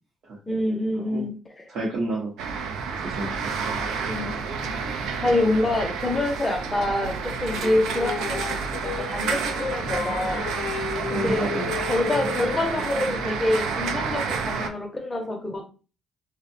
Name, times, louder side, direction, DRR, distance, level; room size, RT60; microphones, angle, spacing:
voice 1, 0.5-1.6 4.1-4.3 4.6-4.7 5.2-8.5 8.8-10.5 11.1-11.5 11.8-15.6, left 2 dB, 15° left, 2 dB, 0.5 m, -26 dB
voice 2, 1.7-2.3 3.0-4.3 11.1-11.8 12.2-12.3, right 2 dB, 55° right, -4 dB, 0.7 m, -31 dB
sound 1, 2.4-14.7, right 5 dB, 85° right, 0.3 m, -29 dB
Singing, 7.5-12.7, left 7 dB, 75° left, 0.4 m, -33 dB
2.5 x 2.1 x 2.5 m, 0.36 s
cardioid pair, 135°, 0 cm